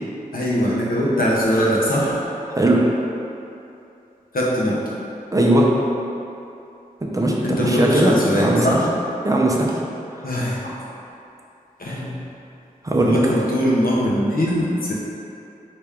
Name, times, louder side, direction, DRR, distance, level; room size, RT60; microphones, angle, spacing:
voice 1, 0.3-2.2 4.3-4.8 7.4-8.8 10.2-10.8 11.8-12.2 13.0-14.9, equal, 80° left, -5 dB, 0.8 m, -21 dB
voice 2, 2.5-2.8 5.3-5.7 7.0-8.8 9.2-9.8 10.1-10.2 12.8-13.2, right 1 dB, 25° right, -3 dB, 0.5 m, -18 dB
4.7 x 3.0 x 3.5 m, 2.8 s
wide cardioid pair, 85°, 15 cm